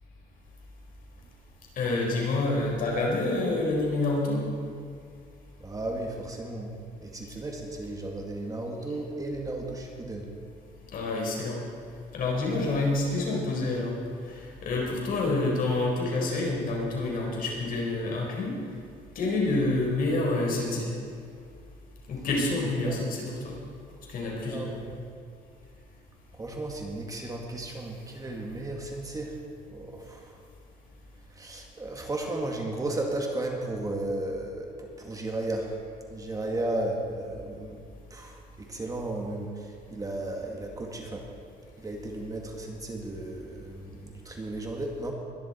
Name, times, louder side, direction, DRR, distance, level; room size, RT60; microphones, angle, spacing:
voice 1, 1.8-4.4 10.9-11.6 12.1-13.9 14.3-18.5 19.1-20.9 22.1-23.6 24.1-24.7, left 2 dB, 60° left, -2 dB, 4.6 m, -28 dB
voice 2, 5.6-6.7 7.0-10.3 22.7-23.0 24.5-25.0 26.3-29.4 29.7-30.4 31.3-35.8 36.1-37.8 38.1-41.3 41.8-45.1, right 2 dB, 20° right, 1 dB, 2.0 m, -34 dB
21.5 x 11.5 x 4.4 m, 2.3 s
cardioid pair, 110°, 17 cm